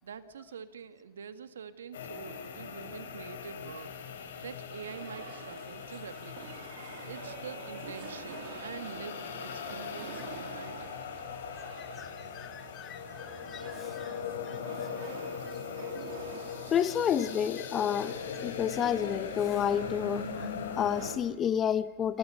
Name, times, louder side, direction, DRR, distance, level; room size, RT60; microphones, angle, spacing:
voice 1, 0.0-4.2 4.4-6.5 7.1-11.0, right 7 dB, 80° right, 11 dB, 1.8 m, -45 dB
sound 1, 1.9-21.2, left 6 dB, 70° left, 4.5 m, -40 dB
sound 2, 3.9-21.1, right 10 dB, 55° right, 3.2 m, -49 dB
voice 2, 11.6-14.2 14.5-14.6 15.0-15.1 15.4-15.6 15.9-16.0 16.7-22.2, left 9 dB, 25° left, 15 dB, 1.0 m, -31 dB
29.0 x 27.0 x 5.7 m, 0.92 s
hypercardioid pair, 135°, 0 cm